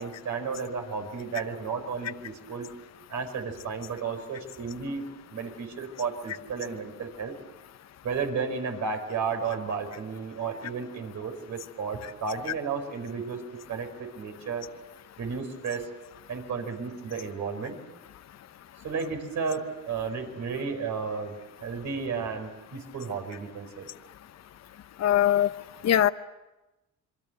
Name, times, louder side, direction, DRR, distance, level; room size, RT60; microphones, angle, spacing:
voice 1, 0.0-2.7 3.1-5.0 5.3-7.3 8.0-13.4 13.7-14.7 15.2-15.9 16.3-17.8 18.8-23.9, right 5 dB, 70° right, 5 dB, 5.1 m, -33 dB
voice 2, 25.0-25.5 25.8-26.1, left 11 dB, 60° left, 13 dB, 0.9 m, -21 dB
27.0 x 23.5 x 7.9 m, 1.0 s
cardioid pair, 90°, 30 cm